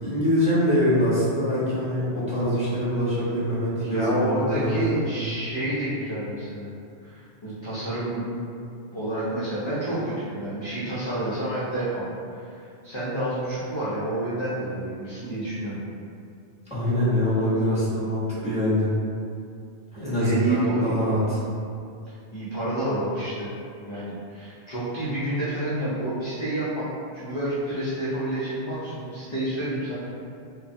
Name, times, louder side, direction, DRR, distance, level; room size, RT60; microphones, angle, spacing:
voice 1, 0.0-4.9 16.7-18.9 19.9-21.4, equal, 5° right, -11 dB, 0.7 m, -24 dB
voice 2, 3.7-6.7 7.0-8.3 8.9-12.1 12.4-15.9 20.2-20.9 22.1-23.5 23.9-26.9 27.1-30.0, right 1 dB, 40° left, -11 dB, 0.4 m, -29 dB
3.1 x 2.1 x 2.6 m, 2.4 s
omnidirectional pair, 1.2 m